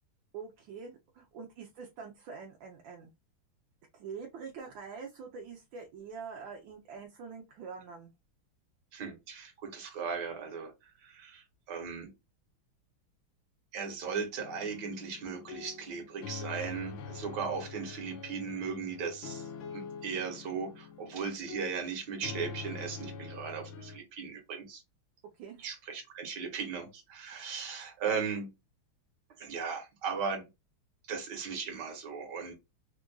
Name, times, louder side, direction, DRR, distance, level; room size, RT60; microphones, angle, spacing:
voice 1, 0.3-3.1 3.9-8.1 25.4-25.7, right 5 dB, 75° right, 1.3 m, -45 dB
voice 2, 8.9-12.1 13.7-19.5 19.7-24.8 25.6-28.5 29.4-30.5 31.1-32.5, right 6 dB, 55° right, 1.6 m, -37 dB
sound 1, 14.4-24.0, left 5 dB, 70° left, 1.3 m, -45 dB
4.5 x 2.4 x 2.2 m
omnidirectional pair, 2.4 m